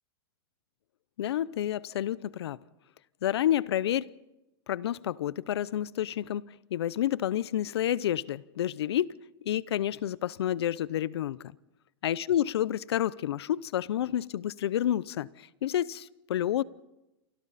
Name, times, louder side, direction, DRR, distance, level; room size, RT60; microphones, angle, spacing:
voice 1, 1.2-2.6 3.2-4.1 4.7-6.4 6.7-9.1 9.5-11.4 12.0-16.6, left 11 dB, 85° left, 0.7 m, -29 dB
28.5 x 25.5 x 4.2 m
supercardioid pair, 150°, 13 cm